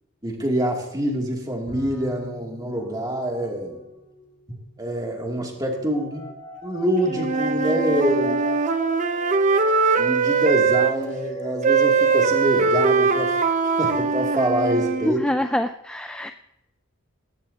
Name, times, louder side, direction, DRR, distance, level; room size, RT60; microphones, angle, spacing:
voice 1, 0.2-3.8 4.8-6.3 6.6-8.4 10.0-13.4 13.8-15.2, equal, 20° right, -1 dB, 2.7 m, -25 dB
Bowed string instrument, 1.7-4.3, left 1 dB, 40° left, 7.0 m, -41 dB
sound 1, 2.7-4.8 5.4-13.1 13.4-14.9, equal, 20° left, 1.5 m, -37 dB
Wind instrument woodwind instrument, 7.0-10.9 11.6-15.2, right 5 dB, 35° right, 0.7 m, -21 dB
voice 2, 15.0-16.3, left 1 dB, 5° left, 7 dB, 0.4 m, -25 dB
19.5 x 16.0 x 2.9 m, 0.88 s
head